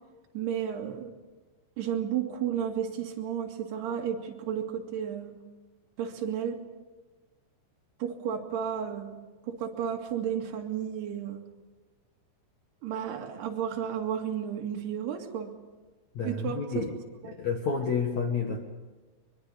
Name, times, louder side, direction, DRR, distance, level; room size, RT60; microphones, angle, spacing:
voice 1, 0.3-1.1 1.8-5.4 6.0-6.6 8.0-11.4 12.8-15.5 16.2-16.9 17.2-17.3, right 8 dB, 60° right, 2 dB, 3.9 m, -32 dB
voice 2, 16.2-16.9 17.3-18.6, left 5 dB, 60° left, 3 dB, 1.9 m, -30 dB
23.0 x 23.0 x 8.2 m, 1.3 s
omnidirectional pair, 5.6 m